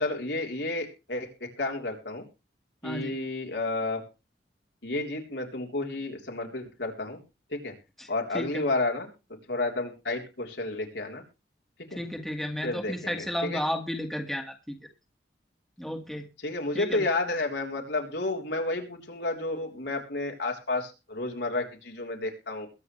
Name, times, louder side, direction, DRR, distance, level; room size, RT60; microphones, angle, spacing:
voice 1, 0.0-2.2 2.8-4.0 4.8-7.2 7.5-7.7 8.1-9.1 9.5-11.2 11.9-12.0 12.6-13.6 16.4-22.7, left 2 dB, 80° left, 2 dB, 3.7 m, -31 dB
voice 2, 2.8-3.1 8.0-8.1 8.3-8.7 11.9-14.8 15.8-16.3 16.7-17.1, equal, ahead, 3 dB, 1.8 m, -33 dB
22.0 x 8.2 x 3.2 m, 0.30 s
head